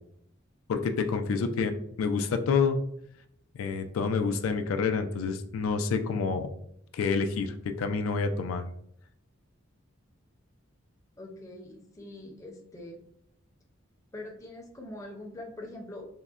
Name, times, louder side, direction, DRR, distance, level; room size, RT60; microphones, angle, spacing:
voice 1, 0.7-1.7 2.0-2.8 3.5-6.5 6.9-8.6, left 5 dB, 85° left, 7 dB, 0.3 m, -28 dB
voice 2, 11.2-13.0 14.1-16.1, left 1 dB, 15° left, 0 dB, 0.5 m, -43 dB
3.6 x 2.1 x 2.3 m, 0.71 s
head